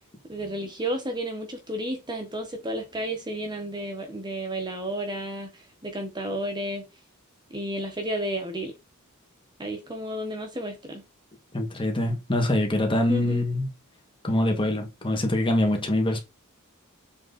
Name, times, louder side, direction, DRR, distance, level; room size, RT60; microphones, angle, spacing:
voice 1, 0.3-6.8 7.5-8.7 9.6-11.0 13.1-13.4, right 1 dB, 20° right, 1.2 m, -32 dB
voice 2, 11.5-13.7 14.2-16.2, left 1 dB, 25° left, 1.9 m, -24 dB
7.5 x 3.9 x 4.2 m
head